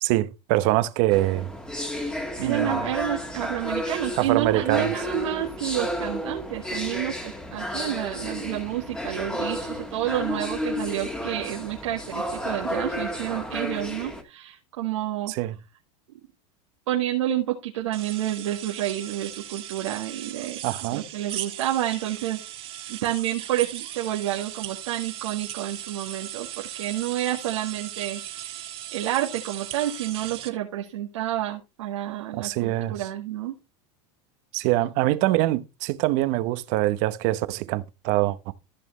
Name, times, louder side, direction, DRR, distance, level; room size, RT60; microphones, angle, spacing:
voice 1, 0.0-1.5 2.4-2.9 4.2-4.9 15.3-15.6 20.6-21.1 32.4-33.1 34.5-38.5, right 17 dB, 55° right, 1.0 m, -24 dB
sound 1, 1.1-14.2, left 1 dB, 5° left, 1.9 m, -32 dB
voice 2, 2.4-15.3 16.9-22.4 22.9-33.6, right 13 dB, 85° right, 1.9 m, -29 dB
sound 2, 17.9-30.5, right 12 dB, 40° right, 1.7 m, -38 dB
14.5 x 6.0 x 3.2 m
supercardioid pair, 125°, 15 cm